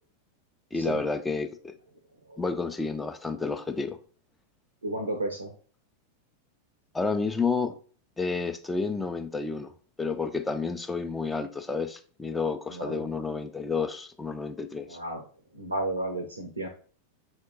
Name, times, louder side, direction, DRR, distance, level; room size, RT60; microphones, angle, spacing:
voice 1, 0.7-1.7 2.4-4.0 6.9-7.7 8.2-9.7 10.0-15.0, left 4 dB, 10° left, 0.4 m, -30 dB
voice 2, 4.8-5.5 12.7-13.1 14.9-15.2 15.5-16.7, right 2 dB, 80° right, 0.5 m, -33 dB
5.7 x 2.1 x 3.6 m
figure-of-eight pair, 90°, 0 cm